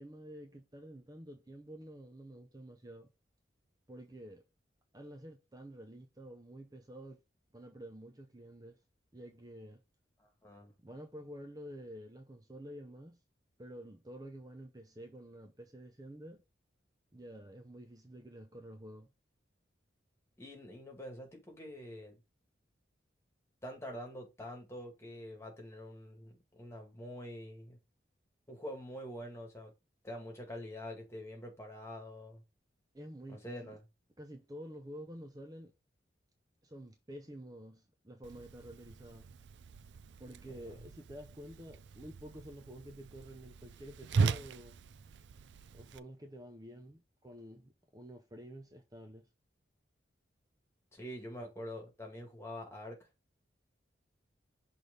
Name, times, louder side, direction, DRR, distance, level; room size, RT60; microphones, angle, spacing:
voice 1, 0.0-3.1 3.9-4.4 4.9-7.2 7.5-8.8 9.1-9.8 10.8-13.2 13.6-16.4 17.1-19.1 32.9-33.8 34.2-35.7 36.6-39.3 40.1-44.8 45.7-49.3, equal, 20° right, 0.7 m, -49 dB
voice 2, 10.2-10.7 20.4-22.2 23.6-27.8 28.5-29.7 30.0-32.4 33.3-33.8 40.5-40.8 50.9-53.0, equal, 15° left, 1.9 m, -46 dB
Whoosh swoosh swish, 38.2-46.0, right 4 dB, 75° right, 0.4 m, -39 dB
6.0 x 3.3 x 5.3 m
head